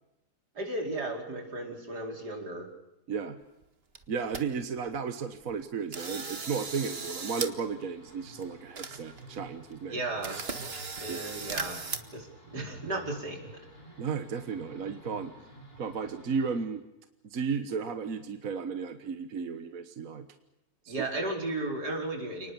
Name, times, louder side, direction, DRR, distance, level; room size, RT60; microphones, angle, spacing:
voice 1, 0.6-2.7 9.8-10.4 11.0-11.8 12.1-13.4 20.9-22.5, right 2 dB, 85° right, 2 dB, 5.3 m, -34 dB
voice 2, 3.1-3.4 4.1-10.0 11.1-11.2 14.0-15.3 15.8-16.8 17.2-20.3 20.8-21.1, right 5 dB, 60° right, 9 dB, 1.7 m, -34 dB
sound 1, 3.6-3.7 3.9-4.4 4.9-5.0 5.4-5.6 5.9-7.5 7.8-7.9 8.4-8.5 8.7-9.4 9.7-9.8 10.2-12.0, right 4 dB, 40° right, 1.8 m, -37 dB
sound 2, 6.0-16.7, right 2 dB, 70° left, 6.2 m, -52 dB
30.0 x 19.5 x 7.0 m, 0.88 s
omnidirectional pair, 1.7 m